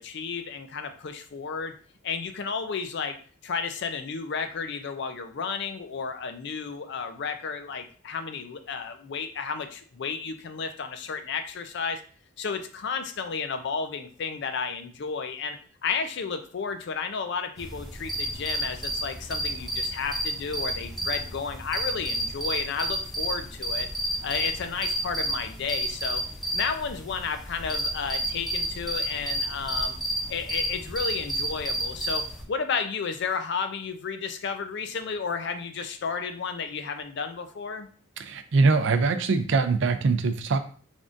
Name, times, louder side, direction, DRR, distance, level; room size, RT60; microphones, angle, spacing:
voice 1, 0.0-1.7 2.0-3.2 3.4-12.0 12.4-23.9 24.2-26.2 26.5-30.0 30.3-37.9, left 5 dB, 60° left, 8 dB, 0.5 m, -32 dB
sound 1, 17.6-32.4, right 1 dB, ahead, 0.7 m, -31 dB
voice 2, 38.3-40.6, right 4 dB, 65° right, 9 dB, 0.4 m, -22 dB
3.7 x 3.5 x 2.5 m, 0.42 s
head